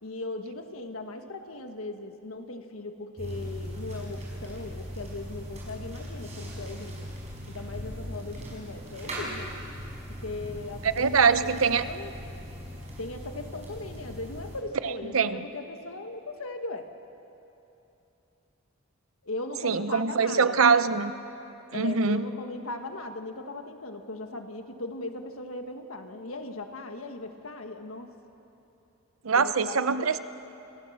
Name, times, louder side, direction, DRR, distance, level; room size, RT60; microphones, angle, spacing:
voice 1, 0.0-7.1 7.5-9.5 10.1-12.2 13.0-16.9 19.2-20.7 21.7-28.1 29.3-29.8, left 2 dB, 80° left, 6 dB, 1.5 m, -38 dB
sound 1, 3.2-14.6, equal, 35° right, 5.4 m, -39 dB
voice 2, 10.8-11.9 14.8-15.4 19.6-21.1 21.7-22.3 29.2-30.2, right 5 dB, 75° right, 12 dB, 0.8 m, -23 dB
28.0 x 14.5 x 7.3 m, 2.9 s
head